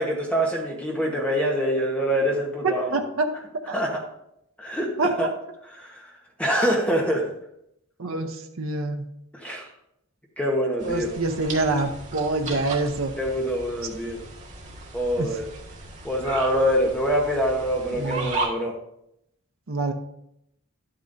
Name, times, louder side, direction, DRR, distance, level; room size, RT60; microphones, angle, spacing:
voice 1, 0.0-3.0 3.7-4.0 4.6-5.3 5.6-6.1 6.4-7.3 9.3-9.7 10.4-11.1 13.2-14.2 14.9-15.5 16.0-18.7, equal, 5° left, -1 dB, 1.1 m, -25 dB
voice 2, 2.6-3.3 3.7-3.8 5.0-5.1 8.0-9.0 10.8-13.1 15.2-15.3 18.0-18.4 19.7-19.9, right 3 dB, 70° right, 4 dB, 0.7 m, -26 dB
sound 1, 10.8-18.5, right 3 dB, 35° right, 1.6 m, -36 dB
11.5 x 8.7 x 2.6 m, 0.78 s
head